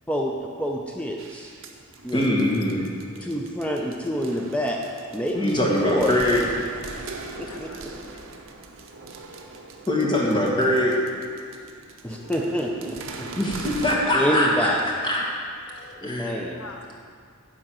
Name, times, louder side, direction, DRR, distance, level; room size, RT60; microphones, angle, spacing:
voice 1, 0.1-1.5 2.0-2.6 3.2-4.8 5.1-6.1 7.4-7.9 12.0-13.3 14.1-14.8 16.0-16.6, equal, 5° left, -1 dB, 0.5 m, -27 dB
sound 1, 1.2-14.0, right 3 dB, 65° right, 0.8 m, -41 dB
voice 2, 2.1-2.9 5.3-6.4 9.9-11.0 13.3-14.7 15.0-15.2 16.0-16.3, left 1 dB, 20° left, -3 dB, 1.5 m, -22 dB
voice 3, 7.4-8.2 15.7-16.0 16.6-16.9, left 3 dB, 80° left, 3 dB, 0.9 m, -45 dB
10.5 x 3.8 x 7.5 m, 2.2 s
head